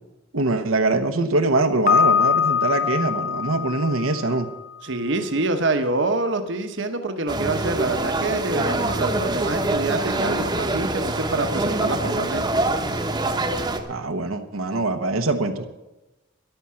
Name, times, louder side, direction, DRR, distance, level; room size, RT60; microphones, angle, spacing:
voice 1, 0.3-4.5 13.9-15.6, right 2 dB, 85° right, 5 dB, 1.0 m, -23 dB
Piano, 1.9-4.8, left 7 dB, 45° left, 0.9 m, -22 dB
voice 2, 4.8-12.5, right 2 dB, 60° right, 6 dB, 1.0 m, -26 dB
sound 1, 7.3-13.8, right 2 dB, 20° right, 1.0 m, -25 dB
13.5 x 11.0 x 5.7 m, 1.0 s
head